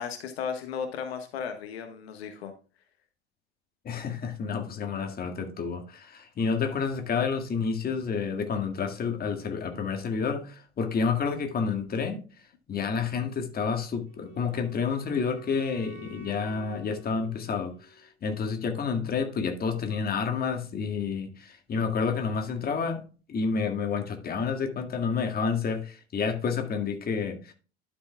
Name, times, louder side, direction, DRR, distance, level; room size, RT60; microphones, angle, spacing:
voice 1, 0.0-2.5, left 7 dB, 65° left, 7 dB, 1.4 m, -35 dB
voice 2, 3.8-12.2 12.7-23.0 23.3-27.5, left 5 dB, 25° left, 5 dB, 1.8 m, -29 dB
Wind instrument woodwind instrument, 14.0-18.1, left 3 dB, 35° right, 2.9 m, -49 dB
11.5 x 6.9 x 2.3 m, 0.36 s
figure-of-eight pair, 75°, 33 cm